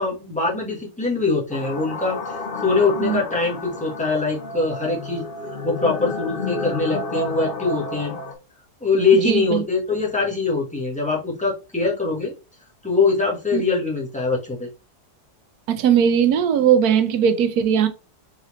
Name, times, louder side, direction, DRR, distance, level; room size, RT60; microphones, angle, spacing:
voice 1, 0.0-5.3 5.6-8.2 8.8-12.3 12.8-14.7, left 4 dB, 5° left, 1.2 m, -22 dB
sound 1, 1.5-8.3, left 2 dB, 50° left, 0.6 m, -31 dB
voice 2, 9.2-9.6 13.5-13.6 15.7-17.9, right 8 dB, 75° right, 1.1 m, -18 dB
4.0 x 3.9 x 3.1 m
omnidirectional pair, 1.7 m